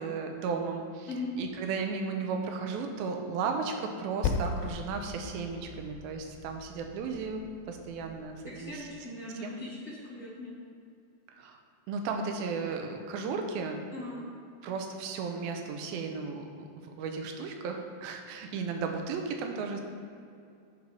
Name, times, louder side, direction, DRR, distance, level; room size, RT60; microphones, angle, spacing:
voice 1, 0.0-1.1 1.4-7.4 7.7-8.4 8.6-8.9 9.4-9.6 11.3-11.6 11.9-13.8 14.6-16.5 16.8-19.8, right 5 dB, 75° right, 4 dB, 2.4 m, -34 dB
Percussion, 4.2-9.1, left 5 dB, 90° left, 2.7 m, -38 dB
voice 2, 8.5-10.5 13.9-14.2, left 2 dB, 60° left, -10 dB, 0.9 m, -39 dB
10.5 x 4.6 x 5.4 m, 2.5 s
omnidirectional pair, 4.8 m